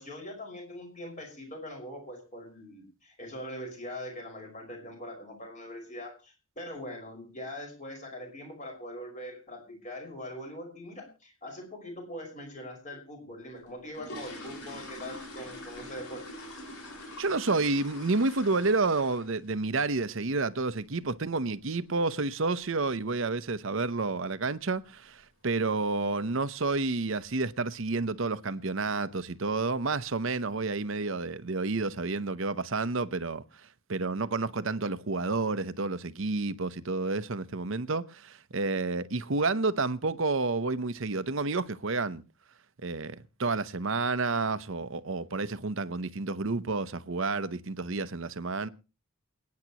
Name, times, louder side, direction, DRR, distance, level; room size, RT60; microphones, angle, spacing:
voice 1, 0.0-16.3, left 1 dB, 35° left, 5.4 m, -42 dB
sound 1, 13.6-19.5 19.8-20.0 20.4-20.5 20.8-21.0 21.4-21.6 21.9-22.0 22.5-22.6 22.9-23.1 23.6-23.9 24.2-24.3 24.7-24.9 25.2-25.3 25.7-25.8 26.4-26.7 27.1-27.4 27.7-27.8 28.3-28.4 29.1-29.3 29.7-30.2 30.6-30.7, left 1 dB, 85° left, 4.9 m, -45 dB
voice 2, 17.2-33.4 33.9-42.2 42.8-48.7, right 3 dB, 60° right, 0.8 m, -30 dB
28.5 x 9.6 x 3.0 m
head